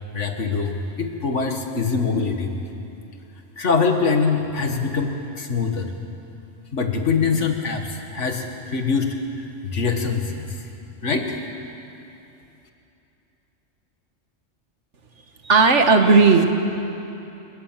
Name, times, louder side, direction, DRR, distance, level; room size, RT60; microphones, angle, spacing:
voice 1, 0.1-2.5 3.6-5.9 6.7-10.6 11.0-11.3, left 5 dB, 75° left, 4 dB, 2.2 m, -24 dB
voice 2, 15.4-16.4, right 4 dB, 70° right, 5 dB, 1.9 m, -14 dB
28.5 x 18.5 x 7.6 m, 2.8 s
omnidirectional pair, 1.3 m